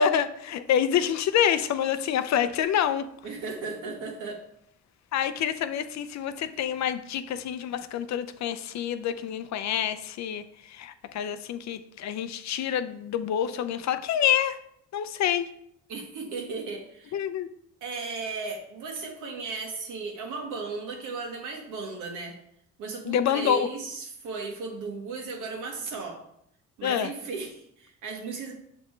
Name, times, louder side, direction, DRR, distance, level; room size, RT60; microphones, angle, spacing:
voice 1, 0.0-3.1 5.1-14.6 14.9-15.5 17.1-17.5 23.1-23.7 26.8-27.1, left 9 dB, 65° left, 11 dB, 0.6 m, -27 dB
voice 2, 3.2-4.4 15.9-17.2 17.8-22.4 22.8-26.2 26.8-28.5, right 4 dB, 80° right, 2 dB, 1.5 m, -35 dB
6.9 x 5.1 x 3.2 m, 0.72 s
cardioid pair, 90°, 30 cm